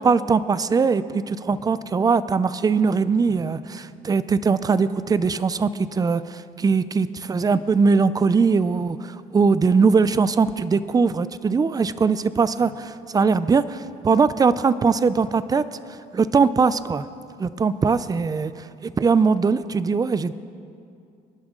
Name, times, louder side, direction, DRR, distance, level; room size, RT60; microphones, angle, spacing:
voice 1, 0.0-15.7 16.1-17.0 17.4-18.5 18.8-20.3, right 5 dB, 20° right, 15 dB, 0.5 m, -21 dB
sound 1, 1.5-1.9 3.3-3.7 5.1-5.8 7.4-8.1 10.0-10.5 12.6-12.8 15.2-15.7 17.8-18.2, right 3 dB, 85° right, 3.7 m, -47 dB
26.5 x 11.5 x 3.8 m, 2.4 s
cardioid pair, 110°, 17 cm